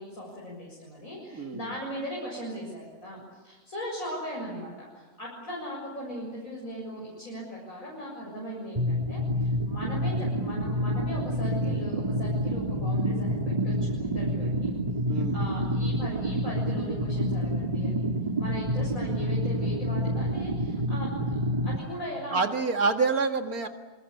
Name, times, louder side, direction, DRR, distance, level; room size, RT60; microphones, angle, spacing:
voice 1, 0.0-14.5 15.1-18.0 18.4-22.7, equal, 60° left, -4 dB, 7.6 m, -39 dB
voice 2, 1.3-1.6 15.1-15.5 22.3-23.7, right 4 dB, 65° right, 5 dB, 2.4 m, -27 dB
sound 1, 8.8-21.8, equal, 25° right, 2.1 m, -28 dB
27.5 x 25.0 x 8.5 m, 1.3 s
omnidirectional pair, 1.6 m